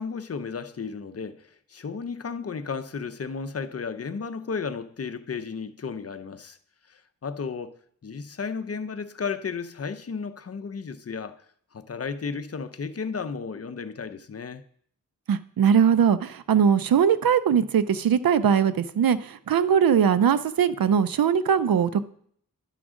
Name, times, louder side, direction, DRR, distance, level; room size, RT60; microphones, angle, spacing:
voice 1, 0.0-6.6 6.9-7.7 8.0-11.4 11.7-14.6, left 5 dB, 45° left, 0.6 m, -34 dB
voice 2, 15.3-22.0, right 7 dB, 90° right, 0.5 m, -21 dB
11.0 x 6.1 x 3.7 m
wide cardioid pair, 80°, 34 cm